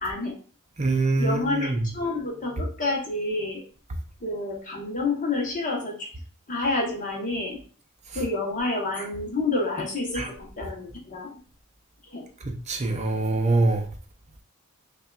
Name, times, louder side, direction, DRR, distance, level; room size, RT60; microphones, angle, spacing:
voice 1, 0.0-0.4 1.1-3.6 4.2-6.1 6.5-7.6 8.1-11.3 12.1-12.3, left 2 dB, 35° left, 1.0 m, -29 dB
voice 2, 0.8-1.8 10.2-10.3 12.7-13.9, right 2 dB, 30° right, 0.5 m, -24 dB
5.4 x 2.3 x 2.3 m
head